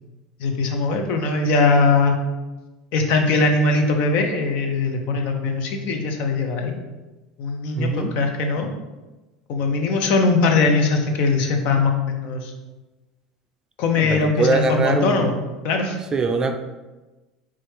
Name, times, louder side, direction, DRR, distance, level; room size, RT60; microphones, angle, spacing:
voice 1, 0.4-2.2 2.9-6.8 7.4-8.7 9.5-12.5 13.8-15.3 15.6-16.0, left 3 dB, 60° left, 4 dB, 0.7 m, -20 dB
voice 2, 7.8-8.2 14.0-15.3 16.1-16.6, right 3 dB, 25° right, 6 dB, 0.4 m, -22 dB
4.4 x 2.4 x 4.5 m, 1.1 s
hypercardioid pair, 80°, 3 cm